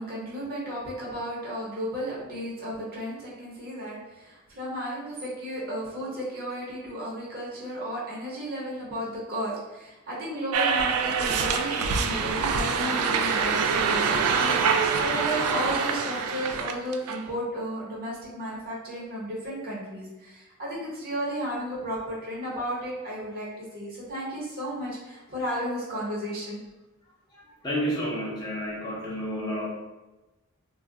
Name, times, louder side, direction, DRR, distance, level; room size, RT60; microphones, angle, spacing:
voice 1, 0.0-26.6, equal, 45° right, -6 dB, 0.9 m, -34 dB
sound 1, 10.5-17.2, right 5 dB, 85° right, 0.3 m, -25 dB
voice 2, 27.6-29.7, equal, 20° left, -7 dB, 0.6 m, -30 dB
2.4 x 2.1 x 3.7 m, 1.1 s
head